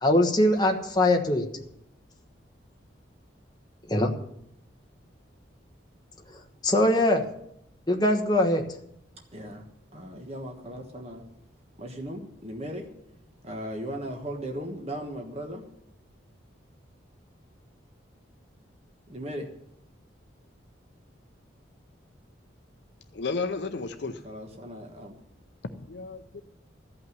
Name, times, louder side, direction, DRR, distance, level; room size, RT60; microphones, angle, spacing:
voice 1, 0.0-1.5 3.9-4.1 6.6-7.2 7.9-8.6, left 1 dB, 20° left, 3 dB, 1.2 m, -22 dB
voice 2, 9.3-9.7 9.9-11.2 11.8-12.9 13.4-15.6 19.1-19.5 24.0-25.2, equal, 30° right, 2 dB, 1.3 m, -37 dB
voice 3, 23.1-24.2 25.8-26.4, left 4 dB, 60° left, 8 dB, 0.6 m, -33 dB
14.5 x 5.8 x 9.3 m, 0.78 s
head